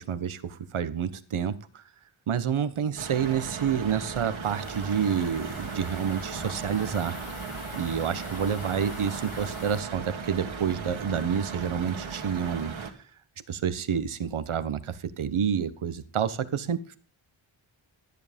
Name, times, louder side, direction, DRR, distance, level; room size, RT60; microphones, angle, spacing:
voice 1, 0.0-1.8 2.3-7.2 7.8-12.7 13.5-17.0, right 8 dB, 90° right, 13 dB, 1.3 m, -29 dB
sound 1, 3.0-12.9, right 5 dB, 75° right, 2.6 m, -37 dB
sound 2, 4.4-9.8, left 5 dB, 85° left, 2.6 m, -44 dB
13.5 x 9.9 x 5.3 m, 0.36 s
wide cardioid pair, 175°, 48 cm